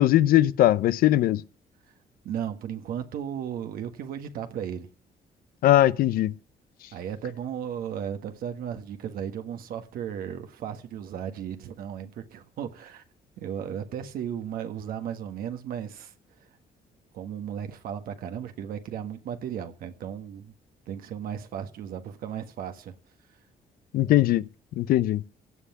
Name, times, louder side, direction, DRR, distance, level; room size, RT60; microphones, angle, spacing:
voice 1, 0.0-1.4 5.6-6.3 23.9-24.4 24.8-25.2, left 14 dB, 85° left, 0.6 m, -20 dB
voice 2, 2.2-4.9 6.9-13.0 13.4-16.5 17.1-20.5 20.9-23.0, right 9 dB, 85° right, 1.6 m, -35 dB
16.5 x 5.8 x 9.5 m
cardioid pair, 85°, 15 cm